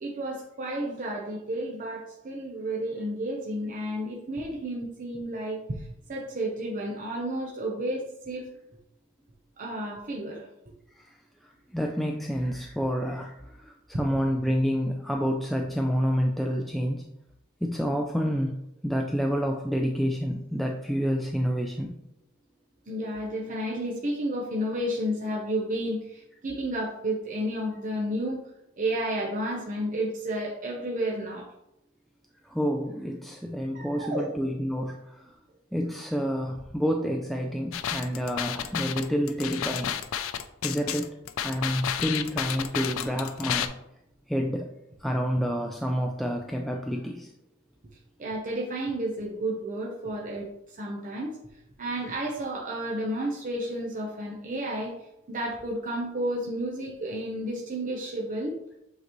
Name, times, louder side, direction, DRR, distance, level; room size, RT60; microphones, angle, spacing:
voice 1, 0.0-8.5 9.6-10.5 22.9-28.4 28.8-31.5 33.7-34.2 48.2-51.3 51.8-58.5, right 1 dB, 40° right, -2 dB, 0.8 m, -31 dB
voice 2, 11.4-17.0 17.6-18.6 18.8-21.9 32.5-35.3 35.7-40.0 40.6-41.1 41.4-43.7 44.3-44.7 45.0-47.3, equal, ahead, 1 dB, 0.3 m, -28 dB
sound 1, 37.7-43.7, left 9 dB, 70° left, 0.4 m, -31 dB
8.0 x 3.9 x 3.0 m, 0.83 s
head